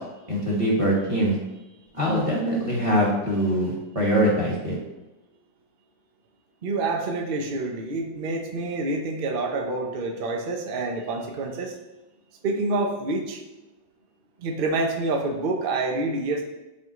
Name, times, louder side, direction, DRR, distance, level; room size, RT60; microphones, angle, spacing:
voice 1, 0.3-1.4 1.9-4.8, equal, 20° right, -4 dB, 1.5 m, -23 dB
voice 2, 6.6-11.8 12.4-13.4 14.4-16.4, right 2 dB, 50° right, 2 dB, 0.7 m, -27 dB
9.9 x 3.7 x 3.1 m, 1.0 s
omnidirectional pair, 1.8 m